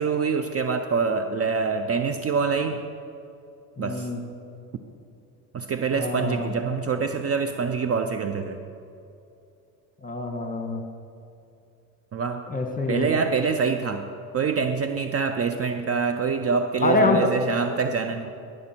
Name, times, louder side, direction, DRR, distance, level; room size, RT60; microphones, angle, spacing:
voice 1, 0.0-2.8 3.8-4.1 5.5-8.6 12.1-12.4 12.9-14.1 14.3-18.3, right 5 dB, 35° right, 8 dB, 0.6 m, -25 dB
voice 2, 3.8-4.2 5.9-6.5 10.0-10.8 12.5-13.1 16.8-17.4, left 3 dB, 20° left, 6 dB, 1.4 m, -25 dB
15.5 x 6.3 x 4.5 m, 2.7 s
supercardioid pair, 70°, 42 cm